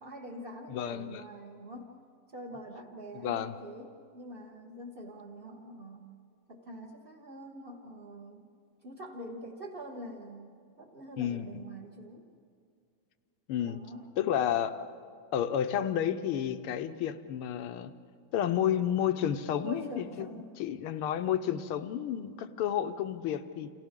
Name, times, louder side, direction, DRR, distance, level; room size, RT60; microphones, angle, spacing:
voice 1, 0.0-2.0 2.3-6.0 6.5-8.5 8.8-12.3 13.6-14.1 19.6-20.5, right 1 dB, 30° right, -3 dB, 1.3 m, -45 dB
voice 2, 0.7-1.2 3.2-3.6 11.2-11.5 13.5-13.8 14.2-14.9 15.3-17.9 18.3-20.3 20.6-23.7, left 10 dB, 85° left, 9 dB, 1.7 m, -31 dB
29.0 x 28.5 x 3.7 m, 2.2 s
omnidirectional pair, 2.4 m